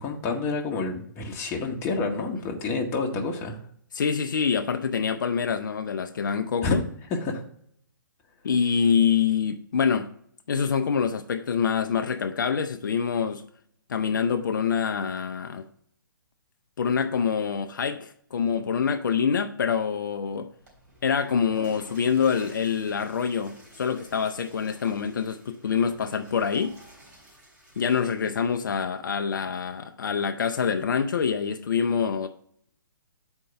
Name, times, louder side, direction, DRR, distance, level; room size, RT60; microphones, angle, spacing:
voice 1, 0.0-3.6 6.6-6.8 7.1-7.4, left 3 dB, 20° left, 1.1 m, -28 dB
voice 2, 3.9-6.8 8.4-10.1 10.5-13.4 13.9-15.7 16.8-20.5 21.0-26.8 27.8-32.3, left 6 dB, 65° left, 0.5 m, -25 dB
Water / Toilet flush, 20.5-28.9, right 1 dB, 45° right, 3.5 m, -52 dB
6.5 x 4.5 x 5.6 m
hypercardioid pair, 135°, 11 cm